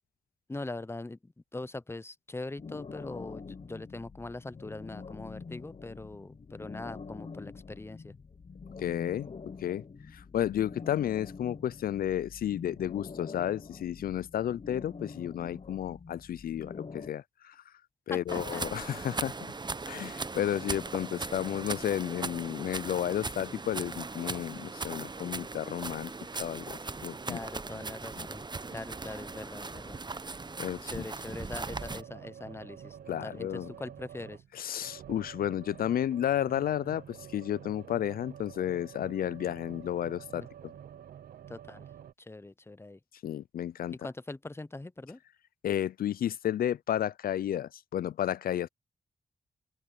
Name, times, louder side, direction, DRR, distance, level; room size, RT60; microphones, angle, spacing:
voice 1, 0.5-8.1 18.1-18.6 27.3-28.4 28.7-30.0 30.9-34.4 40.3-40.5 41.5-41.8 42.2-43.0 43.9-45.2, left 2 dB, 15° left, 0.8 m, -42 dB
sound 1, 2.6-17.1, left 5 dB, 45° left, 1.0 m, -46 dB
voice 2, 8.8-9.3 9.6-9.8 10.1-17.7 18.1-19.5 19.9-26.1 26.4-27.4 28.2-28.3 30.6-31.0 33.1-33.7 34.5-40.7 43.2-44.0 45.6-48.7, left 11 dB, 75° left, 0.4 m, -32 dB
sound 2, 18.3-32.0, right 3 dB, 30° right, 0.8 m, -39 dB
sound 3, 31.7-34.5 34.8-42.1, right 9 dB, 85° right, 0.8 m, -48 dB
open air
cardioid pair, 50°, 15 cm